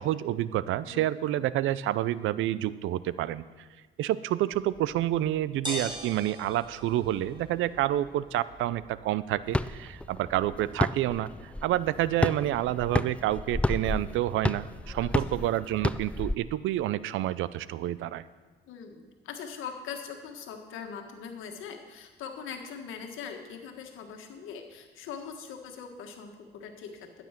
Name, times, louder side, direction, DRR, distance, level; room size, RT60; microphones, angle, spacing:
voice 1, 0.0-3.4 4.0-18.2, right 13 dB, 85° right, 17 dB, 0.5 m, -28 dB
sound 1, 4.5-14.6, equal, 25° right, 3.7 m, -45 dB
sound 2, 9.5-16.4, left 1 dB, 5° left, 0.3 m, -31 dB
voice 2, 18.6-27.3, left 6 dB, 90° left, 4 dB, 1.6 m, -41 dB
12.0 x 9.1 x 5.9 m, 1.3 s
cardioid pair, 90°, 20 cm